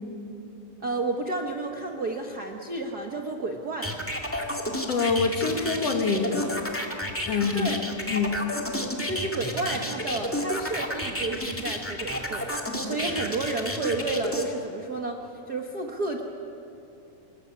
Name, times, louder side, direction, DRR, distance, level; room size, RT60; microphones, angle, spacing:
voice 1, 0.8-3.9 7.5-7.8 9.1-12.5 12.8-15.2 15.5-16.2, right 2 dB, 90° right, 2 dB, 0.8 m, -31 dB
sound 1, 3.8-14.4, left 1 dB, 5° left, 1.0 m, -31 dB
voice 2, 4.9-6.5 7.2-7.7 8.1-8.3, left 5 dB, 50° left, 3 dB, 2.6 m, -25 dB
26.0 x 16.5 x 9.9 m, 2.8 s
omnidirectional pair, 4.0 m